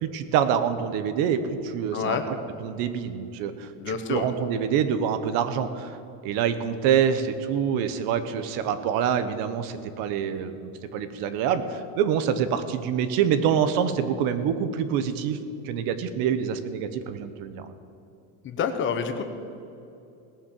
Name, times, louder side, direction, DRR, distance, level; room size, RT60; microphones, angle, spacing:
voice 1, 0.0-2.4 2.6-6.0 6.2-15.4 15.6-17.7, right 8 dB, 60° right, 11 dB, 1.0 m, -26 dB
voice 2, 1.9-2.2 3.8-4.3 18.4-19.2, left 6 dB, 30° left, 7 dB, 0.9 m, -27 dB
18.0 x 7.2 x 7.4 m, 2.7 s
cardioid pair, 170°, 40 cm